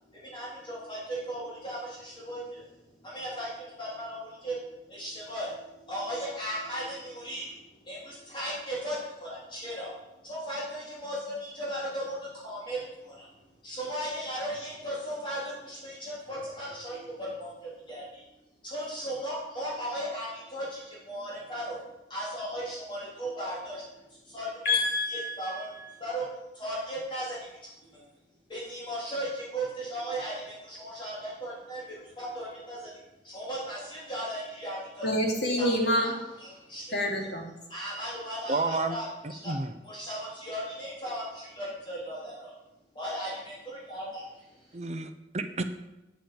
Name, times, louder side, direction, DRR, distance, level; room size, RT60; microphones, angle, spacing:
voice 1, 0.1-2.7 3.0-9.9 10.2-18.2 18.6-21.8 22.1-23.8 24.1-24.7 25.1-25.7 26.0-26.3 26.5-28.0 28.5-35.1 35.6-36.9 37.7-39.5 39.8-42.5 42.9-44.8, equal, 25° left, -6 dB, 3.5 m, -37 dB
voice 2, 24.6-25.9 35.0-36.2 36.9-37.5, left 1 dB, 65° left, 0 dB, 2.8 m, -27 dB
voice 3, 38.5-39.0 39.4-39.8 44.7-45.6, right 3 dB, 40° right, 7 dB, 0.9 m, -30 dB
8.8 x 8.8 x 7.4 m, 0.95 s
head